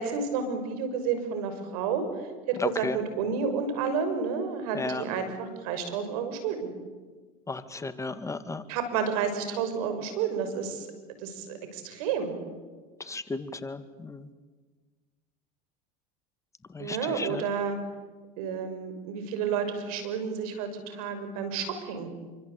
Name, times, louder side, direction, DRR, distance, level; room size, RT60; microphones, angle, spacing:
voice 1, 0.0-2.1 2.5-6.7 8.7-10.9 11.2-12.4 16.8-17.8 18.4-22.1, right 6 dB, 75° right, 8 dB, 6.2 m, -30 dB
voice 2, 2.6-3.0 4.7-5.0 7.5-8.6 13.0-14.3 16.7-17.4, left 3 dB, 15° left, 10 dB, 2.0 m, -34 dB
28.0 x 25.0 x 8.4 m, 1.4 s
supercardioid pair, 95°, 19 cm